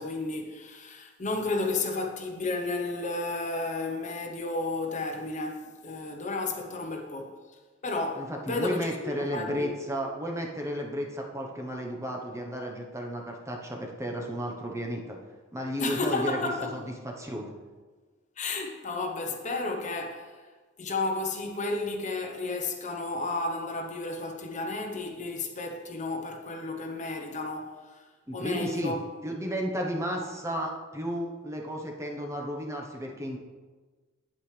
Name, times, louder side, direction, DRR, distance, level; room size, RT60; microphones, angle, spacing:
voice 1, 0.0-7.3 7.8-9.7 15.8-16.8 18.4-20.3 20.8-28.0 28.3-29.0, left 3 dB, 35° left, 0.9 m, -32 dB
voice 2, 8.2-15.2 15.5-17.5 28.3-28.9 29.2-33.4, equal, 15° right, 1.0 m, -33 dB
9.1 x 8.8 x 3.3 m
head